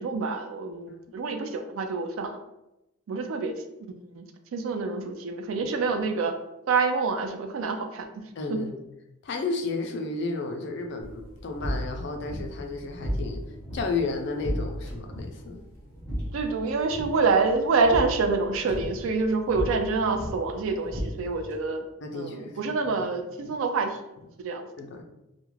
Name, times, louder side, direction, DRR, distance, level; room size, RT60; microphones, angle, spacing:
voice 1, 0.0-2.4 3.1-4.3 4.5-6.3 6.7-8.1 8.5-8.6 16.2-21.8 22.1-24.0 24.4-24.7, right 4 dB, 70° right, 6 dB, 0.3 m, -27 dB
voice 2, 8.4-8.8 9.2-13.4 13.7-15.6 22.0-23.1 23.4-23.5 24.8-25.0, left 3 dB, 55° left, 4 dB, 0.4 m, -32 dB
sound 1, 11.0-21.6, equal, 10° left, 0.7 m, -35 dB
2.3 x 2.1 x 3.1 m, 0.92 s
head